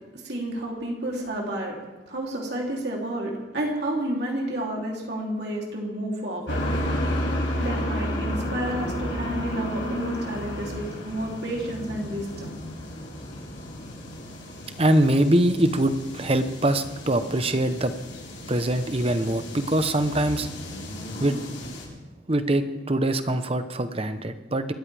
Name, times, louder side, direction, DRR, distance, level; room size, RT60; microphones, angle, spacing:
voice 1, 0.2-1.8 2.1-6.6 7.6-12.5, right 1 dB, 60° right, -2 dB, 3.3 m, -30 dB
sound 1, 6.5-21.8, equal, 80° left, 6.6 m, -32 dB
voice 2, 14.8-17.9 18.5-20.5 21.2-21.4 22.3-24.7, right 1 dB, 30° right, 9 dB, 1.0 m, -23 dB
27.5 x 13.5 x 3.5 m, 1.1 s
head